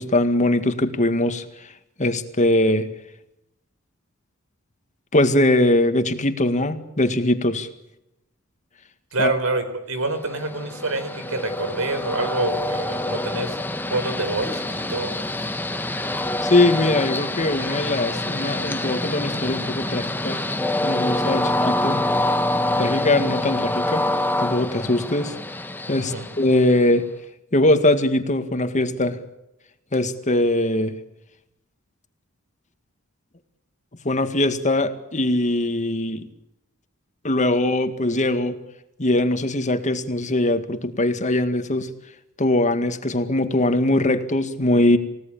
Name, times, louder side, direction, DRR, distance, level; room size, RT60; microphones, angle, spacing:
voice 1, 0.0-1.4 2.0-2.9 5.1-7.7 9.2-9.3 16.4-20.4 20.8-22.0 22.8-24.0 24.4-25.3 25.9-27.0 27.5-29.2 29.9-30.9 34.0-36.2 37.2-38.6 39.0-41.9 42.4-45.0, left 1 dB, 35° left, 8 dB, 2.0 m, -21 dB
voice 2, 9.1-13.6 13.9-15.1 26.0-26.3, right 2 dB, 90° right, 10 dB, 4.3 m, -27 dB
Train, 10.2-27.0, left 1 dB, 10° left, 1.1 m, -26 dB
29.0 x 17.5 x 8.7 m, 0.89 s
head